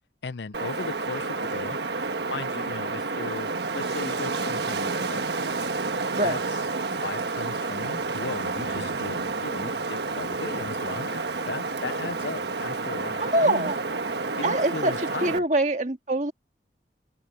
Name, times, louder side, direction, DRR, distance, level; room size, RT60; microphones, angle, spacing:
voice 1, 0.2-1.8 2.3-5.2 6.2-6.4 7.0-13.7 14.4-15.4, left 4 dB, 80° left, 0.7 m, -37 dB
Wind, 0.5-15.4, right 3 dB, 75° right, 1.3 m, -30 dB
voice 2, 13.2-13.8 14.4-16.3, right 1 dB, 45° right, 1.8 m, -24 dB
open air
head